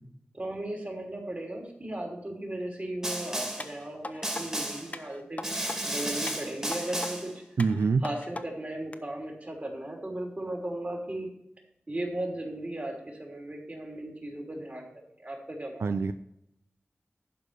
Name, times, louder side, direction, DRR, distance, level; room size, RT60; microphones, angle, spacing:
voice 1, 0.3-5.5 5.9-7.4 8.0-11.3 11.9-14.8 15.2-15.9, right 1 dB, 35° right, 0 dB, 3.3 m, -36 dB
Snare drum, 3.0-3.7 4.2-4.9 5.4-7.3, right 1 dB, 15° right, 2.3 m, -33 dB
sound 1, 3.6-4.4 4.9-5.8 6.3-7.1 7.6-8.4 8.9-9.0, left 2 dB, 35° left, 0.8 m, -40 dB
voice 2, 7.6-8.0 15.8-16.1, right 4 dB, 85° right, 10 dB, 0.4 m, -25 dB
12.0 x 4.8 x 8.1 m, 0.79 s
wide cardioid pair, 65°, 4 cm